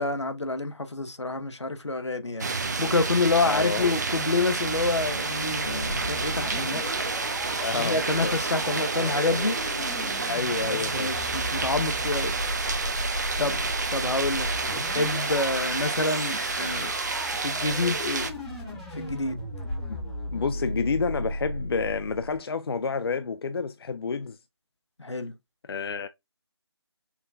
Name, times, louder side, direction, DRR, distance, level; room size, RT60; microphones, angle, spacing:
voice 1, 0.0-2.5 2.8-6.8 7.7-9.6 10.7-12.3 13.4-13.6 13.9-16.9 17.4-18.3 18.9-19.4 25.0-25.3, left 3 dB, 90° left, 0.9 m, -28 dB
sound 1, 2.4-18.3, right 4 dB, 40° right, 0.5 m, -30 dB
sound 2, 2.8-20.4, left 1 dB, 35° left, 0.8 m, -40 dB
voice 2, 3.4-3.9 7.6-8.4 10.2-11.2 13.4-13.6 19.9-20.0 20.3-24.4 25.6-26.1, left 5 dB, 60° left, 0.4 m, -29 dB
sound 3, 5.8-22.4, left 1 dB, 5° left, 0.6 m, -36 dB
5.6 x 2.2 x 2.5 m
figure-of-eight pair, 155°, 14 cm